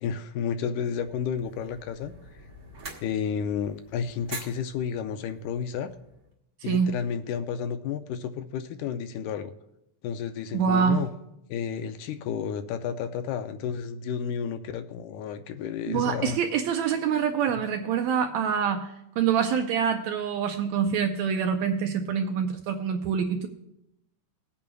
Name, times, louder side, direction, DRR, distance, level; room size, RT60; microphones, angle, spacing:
voice 1, 0.0-2.1 3.0-5.9 6.6-9.5 10.0-11.1 11.5-16.4, left 7 dB, 80° left, 9 dB, 2.0 m, -31 dB
sound 1, 0.9-6.3, right 3 dB, 50° right, 1.1 m, -45 dB
voice 2, 10.5-11.1 15.9-18.9 19.2-23.5, right 7 dB, 75° right, 5 dB, 1.7 m, -25 dB
20.5 x 8.5 x 2.3 m, 0.84 s
omnidirectional pair, 3.7 m